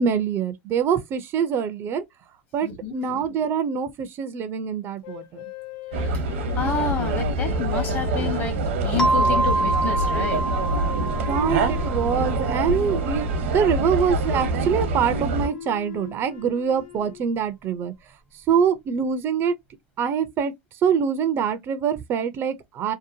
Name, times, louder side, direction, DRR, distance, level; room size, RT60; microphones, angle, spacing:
voice 1, 0.0-2.0 2.5-5.4 11.2-17.9 18.5-19.5 20.0-20.5 20.8-22.9, right 7 dB, 35° right, 0.5 m, -24 dB
voice 2, 2.6-2.9 6.0-6.2 6.5-10.4, left 5 dB, 30° left, 1.1 m, -29 dB
sound 1, 5.0-9.2 9.8-10.5 12.1-12.7 13.3-17.3, left 10 dB, 60° left, 0.5 m, -41 dB
sound 2, 5.9-15.5, right 2 dB, 80° right, 0.8 m, -25 dB
sound 3, 9.0-13.4, right 2 dB, 5° left, 0.6 m, -26 dB
2.7 x 2.1 x 2.6 m
hypercardioid pair, 115°, 7 cm